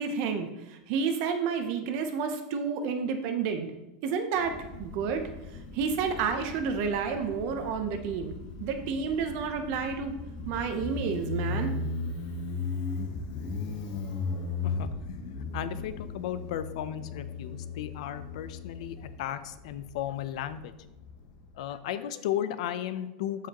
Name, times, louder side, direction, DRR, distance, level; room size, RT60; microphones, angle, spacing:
voice 1, 0.0-3.7 4.0-5.2 5.7-8.3 8.6-10.1 10.5-11.7, right 6 dB, 45° right, 6 dB, 0.7 m, -30 dB
Motorcycle, 4.4-21.6, left 4 dB, 35° left, 1.1 m, -37 dB
voice 2, 14.6-15.2 15.5-20.7 21.6-23.5, left 11 dB, 70° left, 12 dB, 0.6 m, -35 dB
12.5 x 4.9 x 2.9 m, 0.99 s
supercardioid pair, 165°, 4 cm